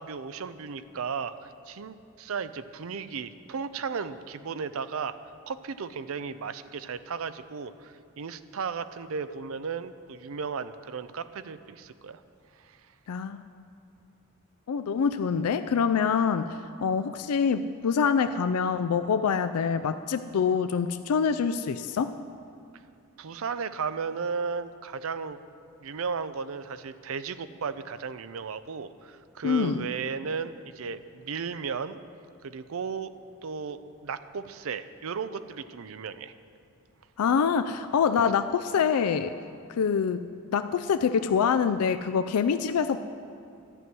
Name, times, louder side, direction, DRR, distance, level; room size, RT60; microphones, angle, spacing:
voice 1, 0.0-5.2 5.4-12.2 12.6-12.8 23.2-25.4 25.8-32.0 32.4-33.1 33.4-36.3, right 5 dB, 70° right, 13 dB, 0.5 m, -35 dB
voice 2, 13.1-13.4 14.7-16.6 16.8-22.1 29.4-29.9 37.2-39.3 39.7-40.2 40.5-43.0, left 6 dB, 90° left, 10 dB, 0.4 m, -25 dB
12.5 x 6.1 x 9.5 m, 2.4 s
head